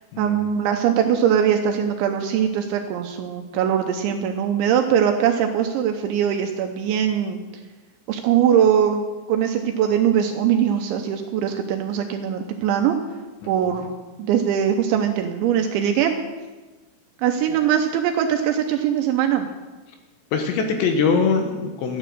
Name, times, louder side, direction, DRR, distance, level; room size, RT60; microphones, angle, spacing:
voice 1, 0.2-7.4 8.1-9.0 9.3-13.0 13.5-13.9 14.2-16.2 17.2-19.5, right 9 dB, 80° right, 5 dB, 2.8 m, -21 dB
voice 2, 20.3-22.0, left 5 dB, 70° left, 4 dB, 3.0 m, -22 dB
14.0 x 10.0 x 6.7 m, 1.2 s
omnidirectional pair, 5.9 m